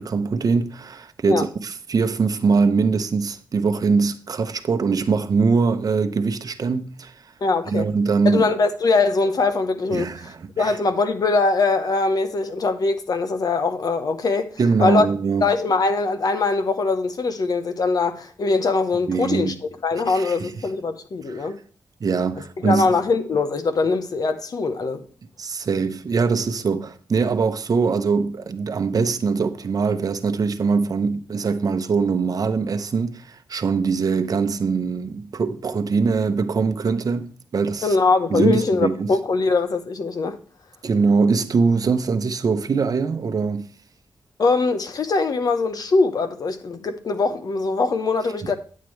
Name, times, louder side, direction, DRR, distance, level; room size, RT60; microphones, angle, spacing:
voice 1, 0.0-7.1 7.7-8.4 9.9-10.8 14.6-15.5 19.1-19.5 20.1-20.5 22.0-22.9 25.4-38.0 38.3-39.1 40.8-43.7, right 4 dB, 55° right, 0.8 m, -22 dB
voice 2, 7.4-7.9 8.2-14.5 14.8-15.1 15.4-19.5 19.8-21.6 22.6-25.1 37.8-40.4 44.4-48.6, left 3 dB, 60° left, 1.0 m, -22 dB
10.5 x 7.5 x 3.2 m
cardioid pair, 55°, 7 cm